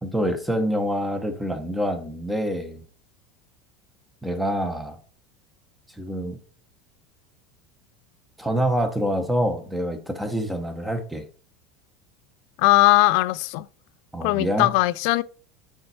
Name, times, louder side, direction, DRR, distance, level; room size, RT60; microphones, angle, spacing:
voice 1, 0.0-2.8 4.2-5.0 6.0-6.4 8.4-11.3 14.1-14.7, equal, 5° right, 1.0 m, -26 dB
voice 2, 12.6-13.7 14.2-15.2, left 18 dB, 55° left, 0.4 m, -19 dB
8.8 x 4.4 x 4.2 m
supercardioid pair, 170°, 0 cm